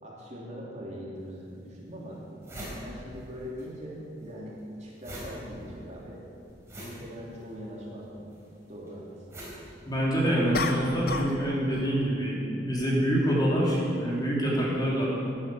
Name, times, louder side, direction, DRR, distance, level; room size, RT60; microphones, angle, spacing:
voice 1, 0.0-2.2 2.8-6.2 6.8-8.3 8.7-9.4, equal, 40° right, -4 dB, 3.0 m, -41 dB
sound 1, 1.2-1.3 1.8-1.9 2.1-3.7 3.9-10.5, equal, 15° right, 4.5 m, -44 dB
sound 2, 6.5-6.6 10.5-11.4 11.7-12.0, left 3 dB, 55° left, 0.9 m, -32 dB
voice 2, 9.8-15.1, equal, 25° left, -5 dB, 3.3 m, -26 dB
13.0 x 10.5 x 7.8 m, 2.6 s
head